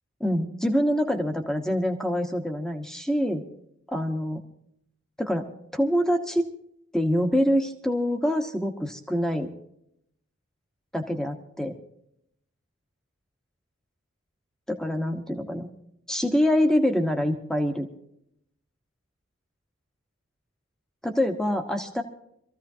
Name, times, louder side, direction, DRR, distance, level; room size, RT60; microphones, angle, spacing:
voice 1, 0.2-3.4 3.9-4.4 5.2-5.5 5.7-6.5 6.9-9.5 10.9-11.8 14.7-15.7 16.1-17.9 21.0-22.0, equal, 5° left, 5 dB, 1.2 m, -25 dB
25.5 x 15.0 x 2.8 m, 0.73 s
head